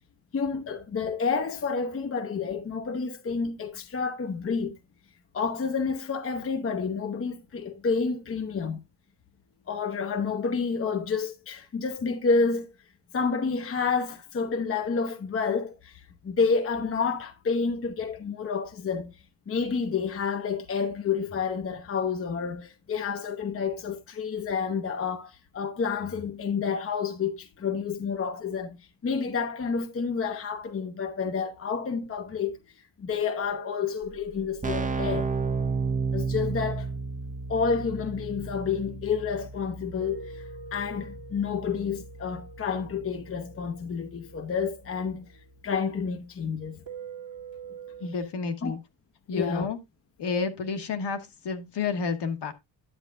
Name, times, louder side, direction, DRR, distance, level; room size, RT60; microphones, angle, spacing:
voice 1, 0.3-4.8 5.3-8.8 9.7-12.7 13.1-19.1 19.5-28.8 29.0-32.6 33.0-35.3 36.1-36.9 37.5-40.4 40.7-45.3 45.6-46.8 48.6-48.7 49.3-49.7, left 5 dB, 30° left, 0.7 m, -29 dB
sound 1, 30.2-31.7 33.1-38.6 40.0-45.4 46.9-48.1, right 3 dB, 50° right, 1.3 m, -47 dB
Keyboard (musical), 34.0-34.1 34.3-44.9, right 4 dB, 15° right, 0.6 m, -34 dB
voice 2, 48.0-48.8 49.3-49.8 50.2-52.5, left 4 dB, 60° left, 1.3 m, -30 dB
10.0 x 7.9 x 2.4 m
cardioid pair, 135°, 46 cm